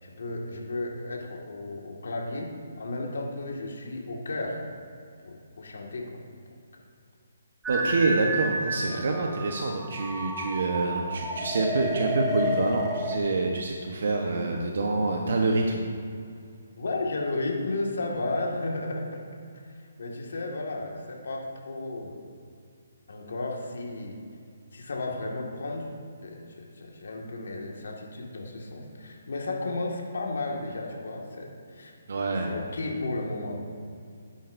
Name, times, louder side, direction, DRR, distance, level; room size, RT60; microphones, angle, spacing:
voice 1, 0.0-4.6 5.2-6.2 8.8-9.0 16.8-19.2 19.8-22.2 23.1-24.2 24.7-25.9 26.2-31.9 32.5-33.6, left 2 dB, 75° left, 0 dB, 1.8 m, -33 dB
sound 1, 7.6-13.2, equal, 5° right, 1.1 m, -31 dB
voice 2, 7.7-15.9 32.1-32.5, right 3 dB, 65° right, 1 dB, 1.0 m, -26 dB
12.0 x 10.5 x 2.6 m, 2.4 s
hypercardioid pair, 155°, 0 cm